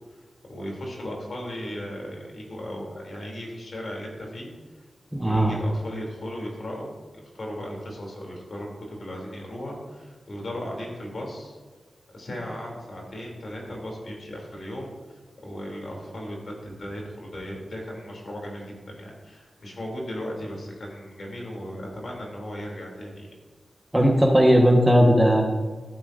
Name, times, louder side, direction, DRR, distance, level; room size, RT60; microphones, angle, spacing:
voice 1, 0.1-4.5 5.1-11.6 12.1-14.9 15.4-23.3, equal, 65° left, -1 dB, 3.0 m, -36 dB
voice 2, 5.1-5.5 23.9-25.4, equal, 10° right, 1 dB, 1.4 m, -17 dB
14.5 x 8.6 x 2.6 m, 1.3 s
wide cardioid pair, 80°, 0 cm